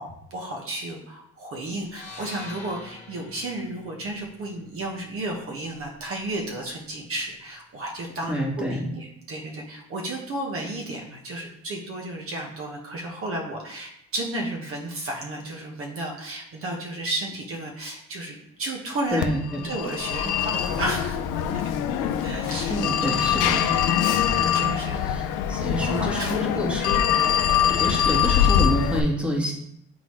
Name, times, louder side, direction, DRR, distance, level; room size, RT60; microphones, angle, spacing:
voice 1, 0.0-19.2 19.6-21.2 22.0-22.8 23.1-23.2 23.4-26.6 27.0-27.3, right 1 dB, 45° right, 0 dB, 1.2 m, -33 dB
sound 1, 1.8-6.0, left 3 dB, 20° left, 1.4 m, -45 dB
voice 2, 8.3-8.8 19.1-19.6 22.7-23.6 24.9-27.3 27.6-29.5, equal, 5° right, -2 dB, 1.5 m, -28 dB
Telephone, 19.2-29.0, left 9 dB, 75° left, 0.7 m, -23 dB
8.2 x 3.9 x 3.1 m, 0.75 s
cardioid pair, 140°, 32 cm